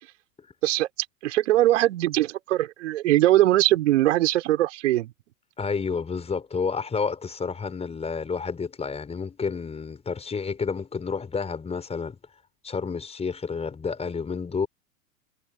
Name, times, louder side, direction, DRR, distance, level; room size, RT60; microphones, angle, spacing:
voice 1, 1.2-5.1, right 15 dB, 55° right, 5.1 m, -21 dB
voice 2, 5.6-12.2 12.6-14.7, left 5 dB, 15° left, 6.0 m, -30 dB
figure-of-eight pair, 95°, 44 cm